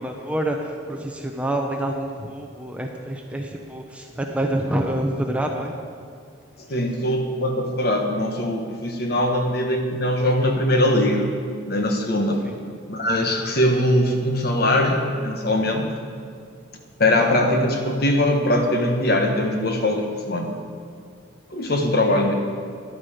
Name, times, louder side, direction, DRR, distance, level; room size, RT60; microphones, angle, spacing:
voice 1, 0.0-5.7 12.4-12.5, right 1 dB, 5° right, 2 dB, 0.7 m, -27 dB
voice 2, 6.6-11.3 11.7-12.4 12.9-15.9 17.0-20.6 21.5-22.3, left 1 dB, 50° left, 3 dB, 1.3 m, -21 dB
12.0 x 11.0 x 5.0 m, 2.2 s
head